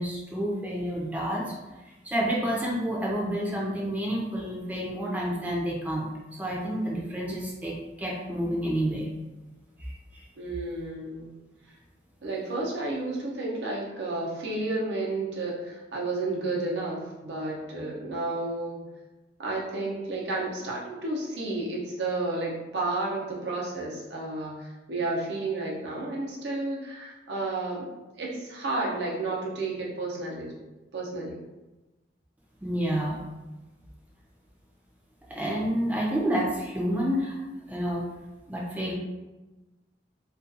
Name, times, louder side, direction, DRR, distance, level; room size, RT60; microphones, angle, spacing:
voice 1, 0.0-1.5 2.0-6.1 6.4-9.1 9.8-10.2 32.6-33.2 35.3-37.4 37.7-38.0 38.5-38.9, equal, 10° right, -4 dB, 0.5 m, -29 dB
voice 2, 10.4-11.3 12.2-18.8 19.4-27.9 28.2-30.5 30.9-31.4 38.9-39.0, right 2 dB, 75° right, -4 dB, 0.7 m, -31 dB
2.5 x 2.3 x 2.6 m, 1.1 s
head